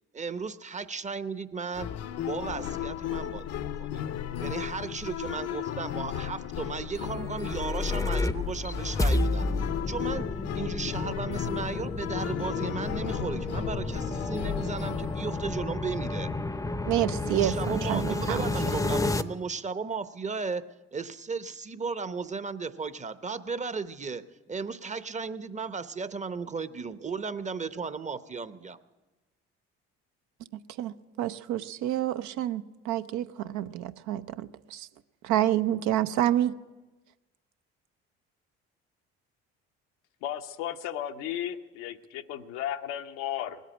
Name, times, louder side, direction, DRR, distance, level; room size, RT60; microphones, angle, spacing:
voice 1, 0.1-1.9 2.3-4.0 4.4-9.5 9.9-10.3 10.5-16.3 17.2-20.6 20.9-24.2 24.5-28.8, right 5 dB, 25° right, 13 dB, 0.8 m, -35 dB
sound 1, 1.7-15.7, left 10 dB, 55° left, 0.7 m, -35 dB
sound 2, 7.2-19.2, left 2 dB, 10° left, 0.6 m, -31 dB
voice 2, 16.9-18.4 30.8-34.9 35.2-36.5, right 12 dB, 70° right, 12 dB, 0.7 m, -28 dB
voice 3, 40.2-43.6, left 11 dB, 85° left, 7 dB, 0.9 m, -34 dB
19.0 x 8.3 x 8.8 m, 1.2 s
supercardioid pair, 65°, 30 cm